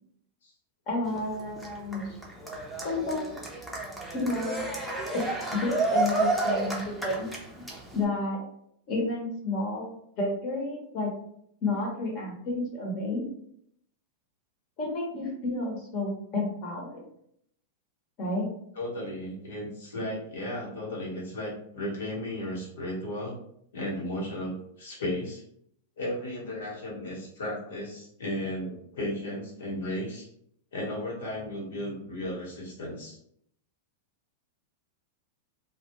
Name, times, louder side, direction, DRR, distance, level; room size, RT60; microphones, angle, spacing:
voice 1, 0.9-2.2 2.8-3.4 4.1-4.6 5.1-7.3 7.6-7.7 7.9-8.4 8.9-11.1 11.6-13.2 14.8-17.0 18.2-18.5, left 2 dB, 45° left, -2 dB, 1.1 m, -31 dB
Cheering, 1.0-8.0, right 2 dB, 5° left, 0.7 m, -31 dB
voice 2, 18.7-23.4 23.7-25.4 26.0-30.3 30.7-33.2, left 1 dB, 85° left, -4 dB, 1.3 m, -35 dB
2.3 x 2.3 x 2.9 m, 0.71 s
hypercardioid pair, 125°, 0 cm